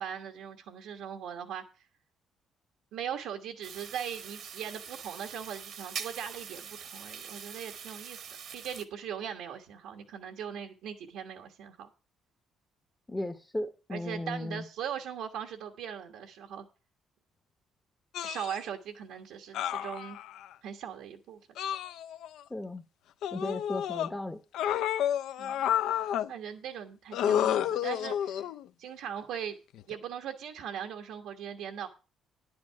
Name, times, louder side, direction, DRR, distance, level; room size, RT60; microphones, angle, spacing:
voice 1, 0.0-1.6 2.9-8.2 8.5-11.9 13.9-16.6 18.2-20.2 20.6-21.4 23.4-23.6 25.4-25.6 26.3-28.4 28.8-29.6 29.9-31.9, right 8 dB, 85° right, 1.3 m, -39 dB
sound 1, 3.6-8.8, right 7 dB, 55° right, 1.0 m, -43 dB
voice 2, 13.1-14.6 22.5-22.8 23.3-24.4, left 1 dB, 10° left, 0.7 m, -36 dB
sound 2, 18.1-18.6 19.5-20.5 21.6-22.4 23.2-24.1 24.5-26.3 27.1-28.6 29.8-29.9, left 10 dB, 75° left, 0.5 m, -30 dB
10.5 x 8.6 x 4.5 m
cardioid pair, 145°, 0 cm